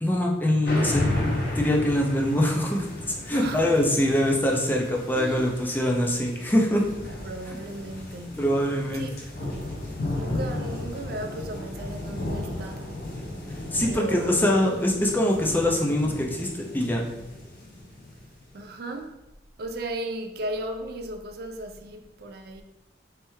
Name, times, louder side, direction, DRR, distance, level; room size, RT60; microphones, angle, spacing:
voice 1, 0.0-2.9 3.3-6.8 8.4-9.1 13.7-17.0, left 1 dB, 10° left, 0.4 m, -23 dB
sound 1, 0.6-18.5, left 1 dB, 50° left, 0.8 m, -34 dB
voice 2, 3.3-3.7 5.1-5.5 7.2-8.5 8.9-9.1 10.1-12.9 13.8-14.5 18.5-19.2 19.6-22.6, right 1 dB, 55° right, 0.4 m, -36 dB
3.3 x 3.3 x 3.1 m
head